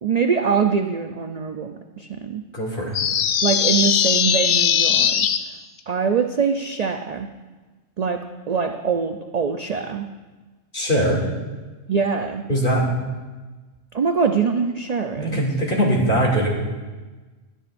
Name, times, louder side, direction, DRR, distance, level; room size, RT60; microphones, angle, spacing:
voice 1, 0.0-2.4 3.4-5.3 5.9-7.3 8.0-8.2 8.5-10.0 11.9-12.4 13.9-15.4, right 6 dB, 50° right, 5 dB, 0.5 m, -23 dB
voice 2, 2.5-2.9 10.7-11.2 12.5-12.9 15.2-16.5, right 1 dB, 45° left, -2 dB, 2.9 m, -21 dB
sound 1, 2.9-5.4, left 8 dB, 85° left, 1.0 m, -19 dB
22.5 x 10.0 x 2.6 m, 1.3 s
omnidirectional pair, 1.3 m